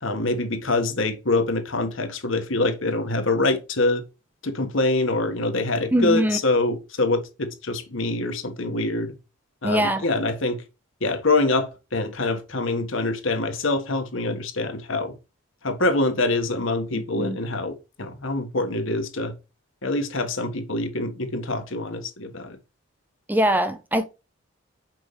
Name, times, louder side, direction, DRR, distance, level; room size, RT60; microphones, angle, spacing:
voice 1, 0.0-4.0 4.4-9.1 9.6-10.6 11.0-15.1 15.6-19.3 19.8-22.6, left 2 dB, 65° left, 1.4 m, -25 dB
voice 2, 5.9-6.4 9.6-10.0 16.9-17.4 23.3-24.1, equal, 10° right, 0.7 m, -22 dB
6.2 x 5.2 x 3.2 m
head